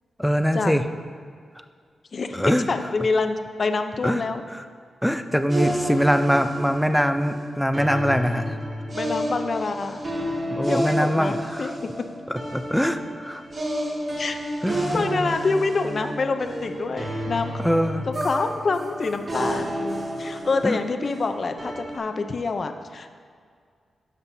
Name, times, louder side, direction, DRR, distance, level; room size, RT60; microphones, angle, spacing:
voice 1, 0.2-0.8 2.3-2.7 4.0-4.2 5.0-8.6 10.5-11.7 12.5-13.4 14.6-15.1 17.6-18.1 20.6-20.8, equal, ahead, 8 dB, 0.5 m, -23 dB
voice 2, 2.1-4.4 8.9-10.1 10.7-11.9 14.2-14.4 14.9-17.5 18.1-19.8 20.2-23.1, left 4 dB, 50° left, 7 dB, 0.6 m, -26 dB
sound 1, 5.5-22.0, right 1 dB, 45° right, 1.9 m, -30 dB
12.5 x 7.5 x 2.7 m, 2.1 s
cardioid pair, 90°, 0 cm